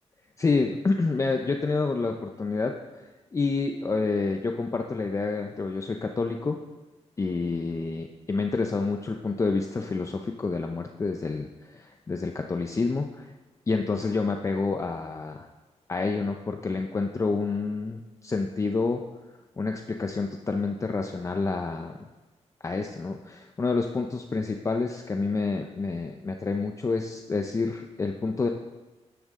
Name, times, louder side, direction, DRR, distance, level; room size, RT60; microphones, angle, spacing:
voice 1, 0.4-6.6 7.2-13.3 13.7-15.5 15.9-19.0 19.6-22.0 22.6-28.5, left 3 dB, 25° left, 4 dB, 0.6 m, -28 dB
13.5 x 10.5 x 3.7 m, 1.2 s
wide cardioid pair, 130°, 12 cm